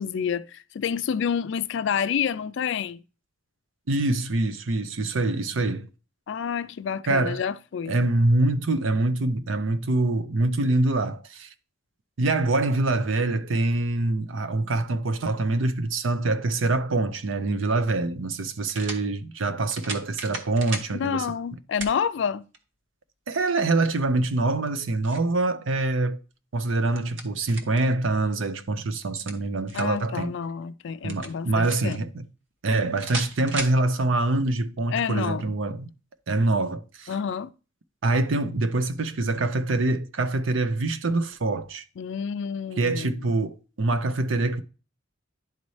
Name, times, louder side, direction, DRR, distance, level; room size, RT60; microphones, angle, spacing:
voice 1, 0.0-3.0 6.3-8.0 20.9-22.4 29.7-32.0 34.9-35.5 37.1-37.5 42.0-43.3, left 7 dB, 70° left, 0.4 m, -29 dB
voice 2, 3.9-5.9 7.1-7.4 7.9-11.5 12.2-21.3 23.3-26.2 26.5-30.3 31.0-32.1 32.6-35.9 36.3-37.1 38.0-41.8 42.8-44.6, right 2 dB, 85° right, 0.6 m, -25 dB
sound 1, 17.4-17.5 18.7-19.0 19.7-20.9 21.8-22.0 22.5-22.6 24.5-25.3 26.7-27.8 29.0-30.0 31.1-32.0 33.0-33.8, right 3 dB, 70° right, 1.0 m, -36 dB
10.5 x 4.1 x 3.1 m
head